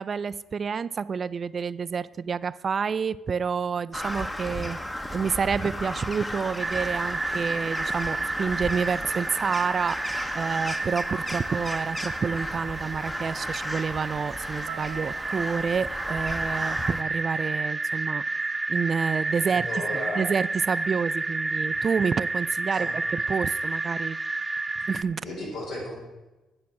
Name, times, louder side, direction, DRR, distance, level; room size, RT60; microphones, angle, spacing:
voice 1, 0.0-4.8 5.1-18.3 18.7-24.2 24.9-25.2, right 6 dB, 45° right, 17 dB, 0.3 m, -29 dB
Crow, 3.9-17.0, left 1 dB, 10° left, 0.9 m, -35 dB
sound 1, 6.6-25.0, right 3 dB, 20° right, 0.7 m, -31 dB
sound 2, 11.0-15.2, right 12 dB, 80° right, 0.7 m, -48 dB
voice 2, 19.5-20.3 22.7-22.9 25.2-25.9, left 1 dB, 80° left, -3 dB, 4.2 m, -34 dB
10.5 x 6.3 x 5.8 m, 1.1 s
supercardioid pair, 65°, 0 cm